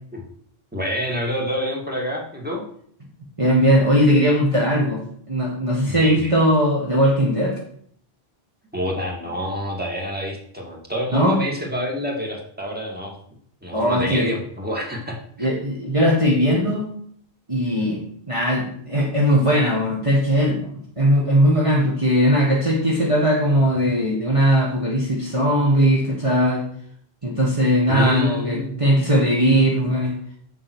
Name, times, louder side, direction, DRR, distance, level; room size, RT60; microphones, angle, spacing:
voice 1, 0.7-2.6 5.8-6.3 8.7-13.1 13.6-15.5 17.7-17.8 27.9-29.0, equal, 10° right, -1 dB, 2.3 m, -28 dB
voice 2, 3.4-7.6 11.1-11.4 13.7-14.3 15.4-16.9 17.5-18.0 18.3-26.6 27.2-30.2, equal, 30° right, -3 dB, 1.8 m, -19 dB
7.7 x 7.6 x 6.4 m, 0.63 s
omnidirectional pair, 1.0 m